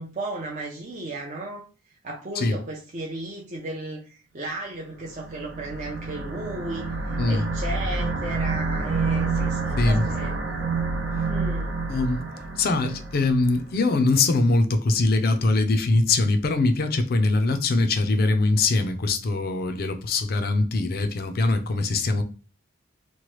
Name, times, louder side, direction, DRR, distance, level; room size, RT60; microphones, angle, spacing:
voice 1, 0.0-1.6 2.0-10.3 11.3-11.7, right 2 dB, 35° right, 0.5 m, -35 dB
sound 1, 5.0-13.7, right 3 dB, 70° right, 0.7 m, -28 dB
voice 2, 11.9-12.2 12.6-22.2, left 2 dB, 45° left, 0.4 m, -22 dB
3.0 x 2.1 x 3.0 m
head